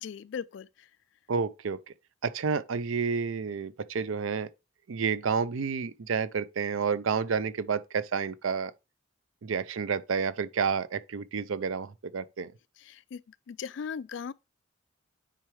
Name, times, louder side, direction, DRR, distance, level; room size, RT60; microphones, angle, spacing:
voice 1, 0.0-0.7 12.8-13.2 13.5-14.3, left 6 dB, 60° left, 0.3 m, -38 dB
voice 2, 1.3-1.8 2.2-4.5 4.9-8.7 9.4-12.5, right 5 dB, 70° right, 0.5 m, -30 dB
9.2 x 4.6 x 3.2 m
head